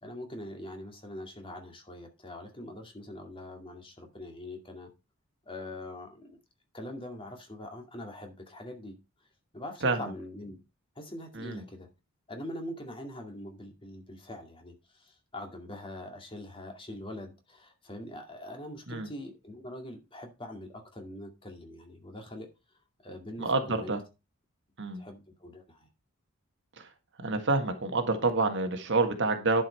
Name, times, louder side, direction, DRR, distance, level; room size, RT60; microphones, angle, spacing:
voice 1, 0.0-4.9 5.5-6.4 6.7-8.9 9.5-10.6 11.0-11.9 12.3-22.5 23.0-24.0 25.0-25.9, left 1 dB, 25° left, 2.2 m, -43 dB
voice 2, 23.4-24.0 24.8-25.0 26.8-26.9 27.2-29.6, right 3 dB, 60° right, 1.6 m, -28 dB
11.0 x 5.5 x 4.4 m
head